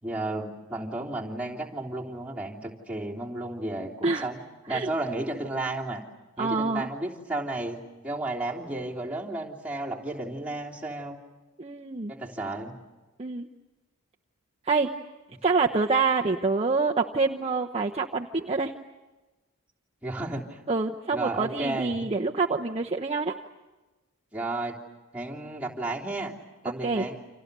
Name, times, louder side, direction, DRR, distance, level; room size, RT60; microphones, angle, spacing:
voice 1, 0.0-4.4 4.7-6.0 6.4-11.2 12.1-12.8 20.0-20.6 21.1-22.1 24.3-24.8 25.1-26.3 26.6-27.2, right 2 dB, 5° right, -4 dB, 3.2 m, -33 dB
voice 2, 6.4-6.9 11.6-12.1 13.2-13.5 14.7-14.9 15.4-18.7 20.7-23.4 26.8-27.1, right 4 dB, 30° right, 1 dB, 0.9 m, -26 dB
29.5 x 27.0 x 6.8 m, 1.2 s
head